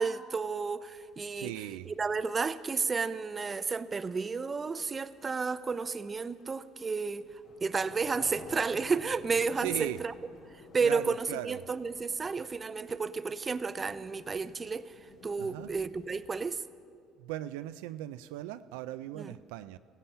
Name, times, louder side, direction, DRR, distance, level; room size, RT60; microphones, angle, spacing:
voice 1, 0.0-1.5 1.9-7.2 7.6-10.1 10.7-15.0 15.2-16.6 19.2-19.4, right 4 dB, 30° right, 0.6 m, -32 dB
Thunder / Rain, 1.0-16.4, left 2 dB, 70° left, 2.8 m, -54 dB
voice 2, 1.4-1.9 9.6-10.0 10.8-11.6 15.4-15.7 17.2-19.8, right 14 dB, 90° right, 0.3 m, -38 dB
17.0 x 14.0 x 5.6 m
supercardioid pair, 90°, 0 cm